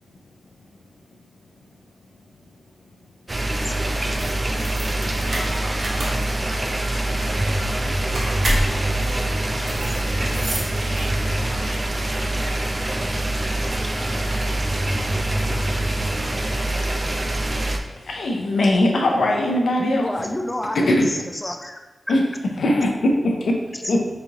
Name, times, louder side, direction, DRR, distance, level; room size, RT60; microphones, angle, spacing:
sound 1, 3.3-17.8, right 1 dB, 35° right, 0.4 m, -24 dB
sound 2, 4.1-11.4, right 1 dB, 70° right, 0.7 m, -30 dB
voice 1, 4.6-9.9 10.7-11.7 12.1-13.2 14.1-15.3, right 1 dB, 90° right, -5 dB, 0.9 m, -42 dB
voice 2, 18.1-20.0 20.7-21.2 22.1-22.2 22.6-23.6 23.9-24.1, left 1 dB, 80° left, 1 dB, 0.5 m, -20 dB
voice 3, 19.8-21.8 23.7-24.0, left 1 dB, 20° left, 4 dB, 0.4 m, -29 dB
4.0 x 2.7 x 2.8 m, 1.2 s
cardioid pair, 50°, 0 cm